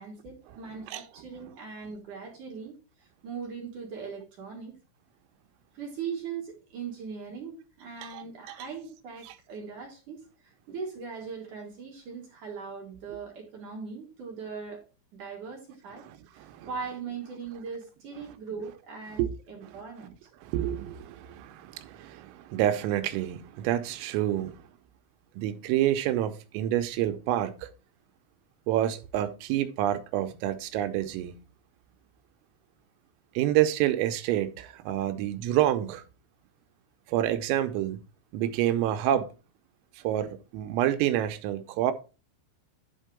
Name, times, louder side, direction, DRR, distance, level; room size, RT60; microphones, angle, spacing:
voice 1, 0.0-2.8 3.2-4.8 5.7-10.2 10.7-14.8 15.1-16.0 16.3-20.1, right 5 dB, 50° right, 2.8 m, -40 dB
voice 2, 8.0-8.5 16.1-16.7 19.2-19.3 20.4-24.6 25.4-27.7 28.7-31.4 33.4-36.0 37.1-38.0 38.3-39.3 40.0-41.9, right 12 dB, 90° right, 3.4 m, -28 dB
11.0 x 4.6 x 5.0 m
omnidirectional pair, 6.0 m